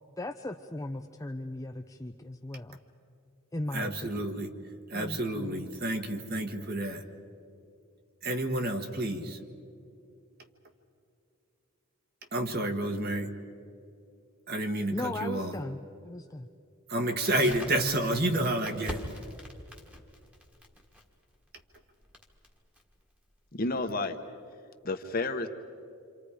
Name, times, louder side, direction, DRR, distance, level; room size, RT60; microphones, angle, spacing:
voice 1, 0.2-2.8 3.5-4.2 4.9-5.6 14.9-15.8 16.0-16.5, left 1 dB, 15° left, 4 dB, 0.5 m, -37 dB
voice 2, 3.7-4.6 4.9-7.1 8.2-9.4 12.3-13.3 14.5-15.6 16.9-19.1, right 1 dB, 45° right, 5 dB, 1.5 m, -30 dB
Crackle, 17.2-24.0, equal, 5° right, 1.5 m, -44 dB
voice 3, 23.5-24.2 24.8-25.5, left 2 dB, 40° left, 6 dB, 1.1 m, -30 dB
28.0 x 27.0 x 5.0 m, 2.5 s
head